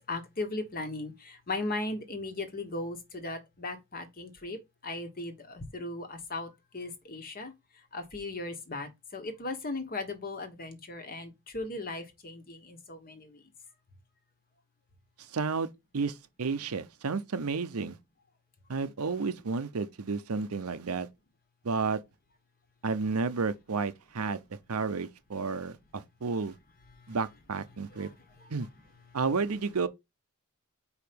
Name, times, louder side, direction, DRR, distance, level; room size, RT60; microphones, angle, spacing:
voice 1, 0.1-4.6 4.8-7.5 7.9-13.4 27.9-28.1, left 2 dB, 40° left, 1.3 m, -37 dB
voice 2, 15.3-15.7 15.9-18.0 18.7-21.1 21.6-22.0 22.8-24.4 24.7-26.5 27.1-28.1 28.5-28.7 29.1-29.9, right 4 dB, 90° right, 0.7 m, -31 dB
4.8 x 4.4 x 5.2 m
head